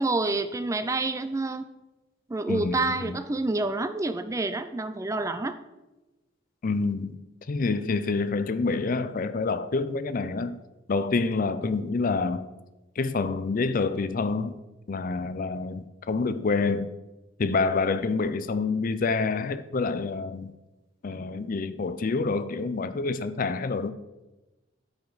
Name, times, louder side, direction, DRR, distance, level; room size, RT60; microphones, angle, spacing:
voice 1, 0.0-1.6 2.3-5.6, right 2 dB, 15° right, 0.4 m, -28 dB
voice 2, 2.5-3.2 6.6-7.2 7.5-10.6 10.9-12.5 13.0-14.5 14.9-16.9 17.4-20.5 21.0-23.9, left 4 dB, 50° left, 0.5 m, -27 dB
13.0 x 5.2 x 4.0 m
head